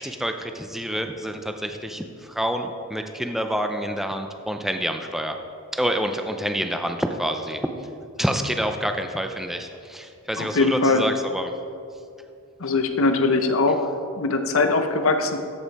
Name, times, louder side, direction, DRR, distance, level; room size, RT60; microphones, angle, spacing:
voice 1, 0.0-5.3 5.7-7.6 8.2-11.5, equal, ahead, 5 dB, 0.4 m, -27 dB
voice 2, 10.4-11.0 12.6-13.9 14.2-15.4, left 3 dB, 65° left, 7 dB, 0.7 m, -21 dB
13.5 x 5.3 x 4.1 m, 2.5 s
head